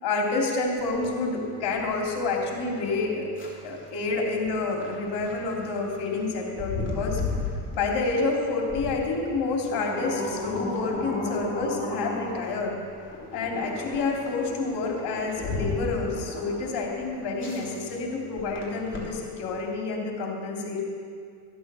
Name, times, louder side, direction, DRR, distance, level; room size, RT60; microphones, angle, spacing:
voice 1, 0.0-3.3 3.6-7.2 7.7-12.8 13.3-20.8, left 3 dB, 70° left, 0 dB, 3.0 m, -28 dB
sound 1, 0.8-19.6, left 2 dB, 30° left, 3.6 m, -35 dB
13.5 x 8.6 x 6.8 m, 2.2 s
supercardioid pair, 75°, 41 cm